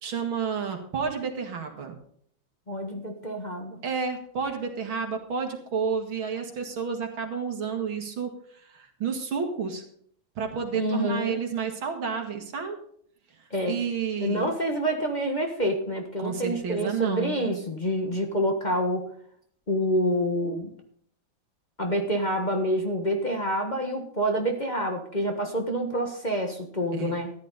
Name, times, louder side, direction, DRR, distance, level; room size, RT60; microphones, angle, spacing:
voice 1, 0.0-1.9 3.8-9.8 10.4-12.8 13.7-14.5 16.2-17.6 26.9-27.2, right 6 dB, 85° right, 3 dB, 2.8 m, -31 dB
voice 2, 2.7-3.8 10.7-11.4 13.5-13.8 14.2-19.1 19.7-20.7 21.8-27.3, equal, 25° left, 3 dB, 1.4 m, -27 dB
14.0 x 10.5 x 4.1 m, 0.62 s
omnidirectional pair, 2.2 m